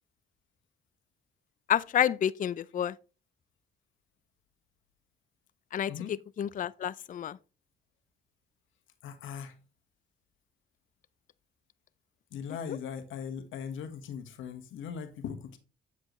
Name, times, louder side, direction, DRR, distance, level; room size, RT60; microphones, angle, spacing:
voice 1, 1.7-2.9 5.7-5.9 6.4-7.4, left 10 dB, 40° left, 0.5 m, -29 dB
voice 2, 9.0-9.6 12.3-15.6, left 7 dB, 80° left, 1.4 m, -39 dB
8.3 x 7.6 x 3.1 m
cardioid pair, 90°, 20 cm